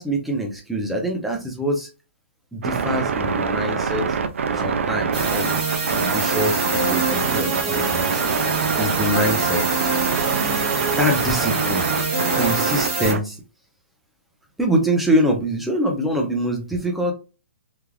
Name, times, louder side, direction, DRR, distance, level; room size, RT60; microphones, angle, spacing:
voice 1, 0.0-1.9 2.5-4.1 4.5-5.5 5.9-6.6 6.9-8.3 8.8-9.6 11.0-11.9 12.3-13.4 14.6-17.1, right 1 dB, ahead, 0 dB, 0.4 m, -24 dB
sound 1, 2.6-13.2, right 5 dB, 75° right, 0.5 m, -25 dB
sound 2, 5.1-13.1, right 4 dB, 30° right, 0.8 m, -24 dB
3.2 x 2.3 x 2.2 m, 0.31 s
hypercardioid pair, 175°, 7 cm